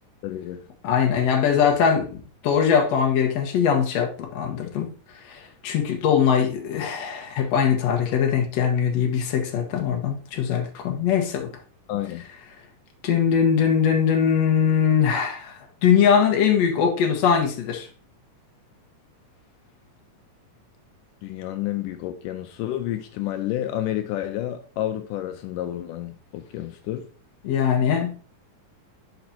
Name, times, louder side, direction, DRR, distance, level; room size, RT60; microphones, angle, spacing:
voice 1, 0.2-0.6 11.9-12.2 21.2-27.0, left 13 dB, 85° left, 2.2 m, -30 dB
voice 2, 0.8-2.2 2.4-4.9 5.3-11.5 13.0-15.5 15.8-17.9 27.4-28.2, left 7 dB, 60° left, 2.1 m, -21 dB
10.5 x 5.2 x 2.8 m
omnidirectional pair, 3.8 m